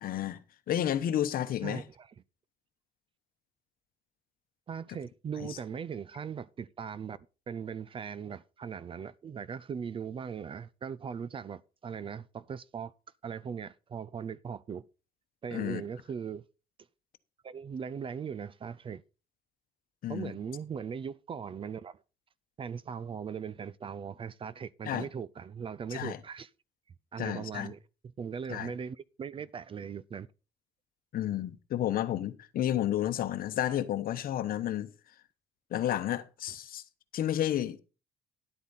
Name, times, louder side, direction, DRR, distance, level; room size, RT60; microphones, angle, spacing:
voice 1, 0.0-1.8 5.4-5.6 15.5-15.8 20.0-20.3 24.8-25.1 25.9-26.2 27.2-27.7 28.5-28.7 31.1-34.9 35.7-36.8 37.1-37.8, left 11 dB, 60° left, 1.0 m, -31 dB
voice 2, 1.6-2.1 4.7-7.2 7.5-12.9 13.2-14.8 15.4-16.4 17.4-19.0 20.1-22.0 22.6-26.5 27.1-27.8 28.0-30.3, right 7 dB, 30° right, 0.4 m, -39 dB
11.0 x 8.3 x 4.1 m
cardioid pair, 110°, 17 cm